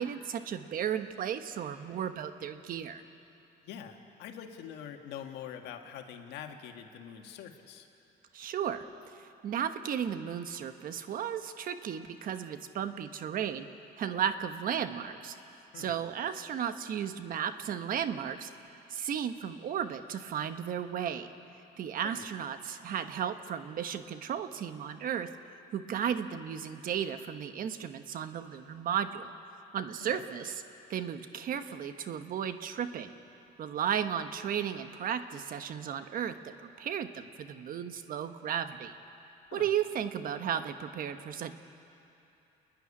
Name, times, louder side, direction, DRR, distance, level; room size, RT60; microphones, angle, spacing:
voice 1, 0.0-3.0 8.3-8.9 9.1-13.7 14.0-15.3 15.7-18.5 18.9-21.3 21.8-25.3 25.7-29.3 29.7-30.6 30.9-33.1 33.6-38.9 39.5-41.5, right 8 dB, 55° right, 9 dB, 1.1 m, -34 dB
voice 2, 3.6-7.9 15.7-16.0 22.0-22.3 30.1-30.2 39.5-39.7, left 9 dB, 85° left, 4 dB, 1.7 m, -44 dB
29.0 x 10.5 x 9.9 m, 2.9 s
cardioid pair, 110°, 17 cm